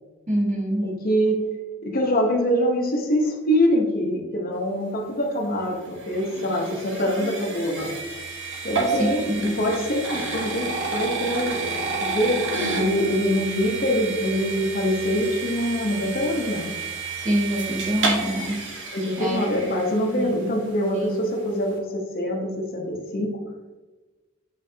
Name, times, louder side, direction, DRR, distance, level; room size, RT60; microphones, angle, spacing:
voice 1, 0.3-0.9 8.9-9.6 17.2-18.6 19.2-19.4 20.2-20.3 20.9-21.1, equal, 40° right, -2 dB, 1.5 m, -25 dB
voice 2, 0.8-1.4 1.8-7.9 8.6-11.6 12.0-12.4 12.7-16.7 18.9-23.3, equal, 50° left, 1 dB, 0.9 m, -24 dB
sound 1, 5.3-20.5, right 3 dB, 70° right, 1.3 m, -30 dB
8.5 x 4.0 x 2.8 m, 1.2 s
head